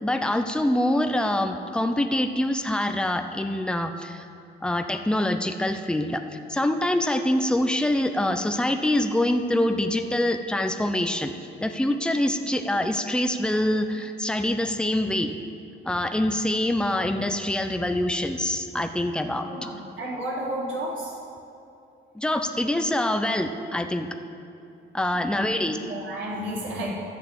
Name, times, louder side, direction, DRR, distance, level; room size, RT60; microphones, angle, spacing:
voice 1, 0.0-4.2 4.6-6.2 6.5-11.3 11.6-15.3 15.8-19.5 22.1-24.1 24.9-25.8, left 1 dB, 5° left, 6 dB, 0.8 m, -25 dB
voice 2, 19.5-21.1 25.1-25.6 25.9-26.9, right 1 dB, 75° right, -4 dB, 3.0 m, -32 dB
12.0 x 6.7 x 8.3 m, 2.6 s
cardioid pair, 90°, 20 cm